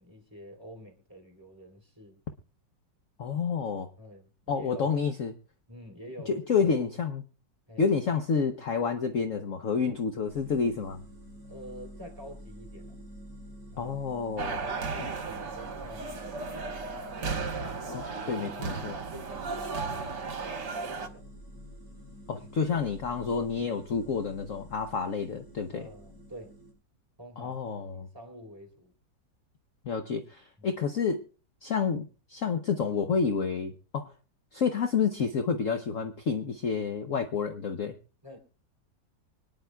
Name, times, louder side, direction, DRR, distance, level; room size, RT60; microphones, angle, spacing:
voice 1, 0.0-2.2 4.0-5.0 5.7-6.8 7.7-7.9 11.5-13.0 13.7-14.0 14.4-16.8 17.4-17.8 18.2-18.6 18.9-21.3 22.7-22.8 25.7-26.5 27.2-27.6 27.9-28.9 30.6-30.8 38.2-38.4, equal, 10° right, 0 dB, 3.6 m, -47 dB
voice 2, 3.2-3.9 4.5-5.3 6.3-7.2 7.8-11.0 13.8-14.6 15.0-15.1 17.9-18.9 22.3-25.9 27.4-28.1 29.8-31.2 31.6-34.1 34.5-38.0, left 5 dB, 50° left, 6 dB, 1.1 m, -29 dB
sound 1, 10.3-26.7, equal, 80° left, 6.6 m, -49 dB
sound 2, 14.4-21.1, right 4 dB, 70° right, 1.9 m, -35 dB
25.0 x 10.0 x 2.3 m, 0.36 s
omnidirectional pair, 1.9 m